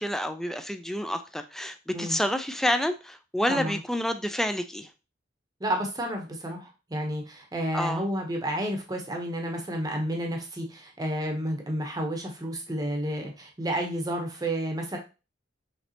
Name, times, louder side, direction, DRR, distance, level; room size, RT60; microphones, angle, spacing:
voice 1, 0.0-4.9 7.7-8.1, equal, ahead, 8 dB, 0.4 m, -29 dB
voice 2, 3.5-3.8 5.6-15.0, right 1 dB, 20° right, 2 dB, 0.8 m, -31 dB
5.7 x 3.2 x 2.8 m, 0.30 s
head